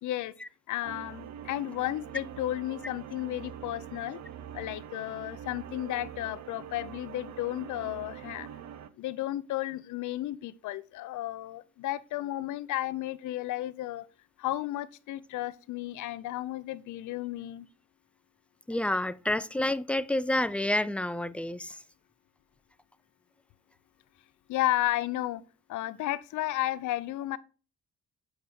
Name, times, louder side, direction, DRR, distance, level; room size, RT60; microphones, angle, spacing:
voice 1, 0.0-0.3 0.7-4.2 4.5-8.5 9.0-14.1 14.4-17.7 24.5-25.4 25.7-27.4, left 15 dB, 80° left, 0.6 m, -33 dB
sound 1, 0.8-8.9, right 10 dB, 65° right, 0.8 m, -44 dB
voice 2, 18.7-21.8, left 1 dB, 5° left, 0.3 m, -29 dB
8.1 x 5.1 x 4.4 m
cardioid pair, 90°, 30 cm